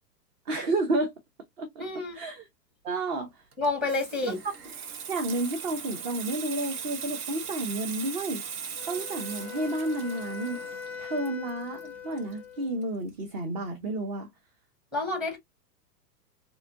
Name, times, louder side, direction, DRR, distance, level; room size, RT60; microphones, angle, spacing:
voice 1, 0.5-1.1 1.6-1.8 2.1-2.5 2.8-3.4 4.2-4.3 5.1-8.4 8.9-10.6 11.0-14.3, right 2 dB, 30° right, 0.7 m, -31 dB
voice 2, 1.8-2.2 3.6-4.4 14.9-15.4, left 3 dB, ahead, 0.8 m, -29 dB
Water tap faucet / Sink (filling or washing), 3.5-12.8 13.1-13.4, right 7 dB, 60° right, 1.0 m, -39 dB
Wind instrument woodwind instrument, 8.8-12.8, left 6 dB, 20° left, 0.3 m, -41 dB
4.0 x 2.7 x 2.4 m
hypercardioid pair, 135°, 50 cm